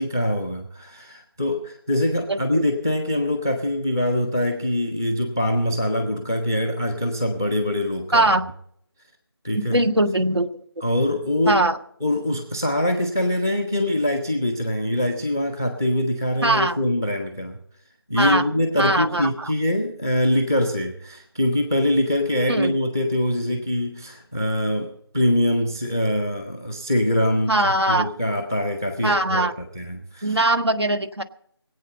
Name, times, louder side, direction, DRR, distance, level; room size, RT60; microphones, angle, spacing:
voice 1, 0.0-8.3 9.4-9.8 10.8-11.6 12.0-17.6 18.1-24.9 25.1-27.5 27.9-30.3, left 1 dB, 10° right, 5 dB, 0.6 m, -23 dB
voice 2, 2.3-2.6 8.1-8.4 9.5-10.5 11.5-11.8 16.4-16.8 18.2-18.4 18.8-19.5 22.5-22.7 27.5-28.1 29.0-29.5 30.2-31.2, right 2 dB, 75° right, 8 dB, 1.5 m, -21 dB
22.5 x 8.6 x 5.2 m, 0.68 s
figure-of-eight pair, 165°, 13 cm